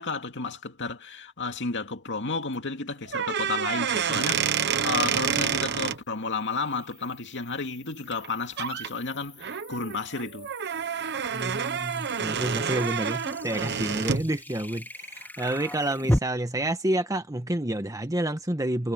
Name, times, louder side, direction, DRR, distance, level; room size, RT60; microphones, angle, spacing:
voice 1, 0.0-10.5, left 4 dB, 60° left, 2.5 m, -32 dB
sound 1, 2.5-2.6 6.0-16.2, equal, 10° left, 3.6 m, -37 dB
sound 2, 3.1-6.0 8.1-8.3 8.6-8.9 9.4-14.3, right 7 dB, 55° right, 1.1 m, -28 dB
voice 2, 11.3-18.9, right 1 dB, 15° right, 1.5 m, -29 dB
head